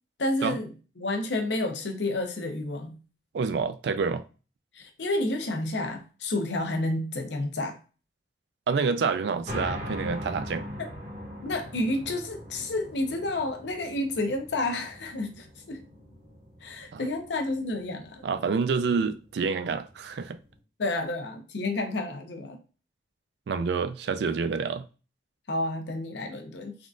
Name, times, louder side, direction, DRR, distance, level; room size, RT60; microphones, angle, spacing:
voice 1, 0.2-3.0 4.7-7.8 10.8-10.9 11.4-15.8 16.6-18.2 20.8-22.6 25.5-26.8, left 2 dB, 85° left, 0.7 m, -30 dB
voice 2, 3.3-4.2 8.7-10.7 16.9-17.0 18.2-20.4 23.5-24.9, right 5 dB, 75° right, 0.3 m, -28 dB
sound 1, 9.4-20.6, equal, 35° right, 1.2 m, -41 dB
3.6 x 2.4 x 2.4 m
head